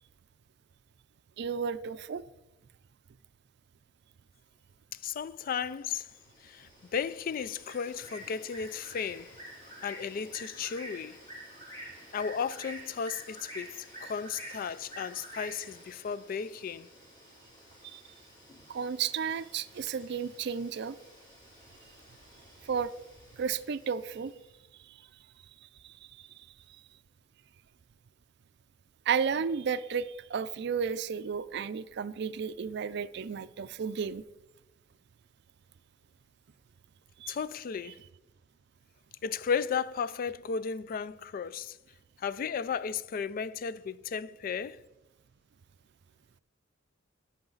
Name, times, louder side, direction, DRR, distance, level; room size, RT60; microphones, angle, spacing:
voice 1, 1.4-2.2 17.9-18.0 18.7-21.0 22.6-22.9 23.4-24.3 25.8-25.9 29.1-34.2 37.2-37.4, right 6 dB, 60° right, 0.4 m, -33 dB
voice 2, 4.9-6.1 6.4-9.3 9.8-11.2 12.1-16.9 37.3-38.0 39.2-41.8 42.2-44.8, left 6 dB, 45° left, 0.3 m, -34 dB
Bird, 5.6-24.3, equal, 25° left, 3.2 m, -49 dB
10.5 x 8.0 x 3.9 m
head